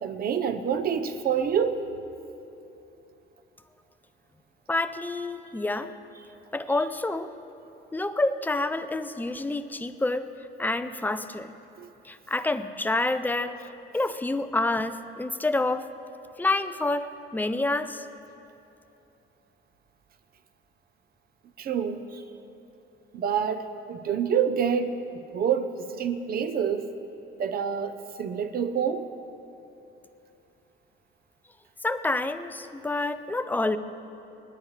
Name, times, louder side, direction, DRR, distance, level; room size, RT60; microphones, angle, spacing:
voice 1, 0.0-1.8 11.8-11.9 21.6-22.2 23.1-26.9 27.4-29.1, right 7 dB, 50° right, 10 dB, 0.7 m, -27 dB
voice 2, 4.7-5.9 6.5-7.3 7.9-10.3 10.6-11.5 12.0-15.9 16.4-18.0 31.8-33.8, left 2 dB, 10° left, 11 dB, 0.4 m, -28 dB
29.0 x 10.0 x 3.2 m, 2.9 s
cardioid pair, 160°, 20 cm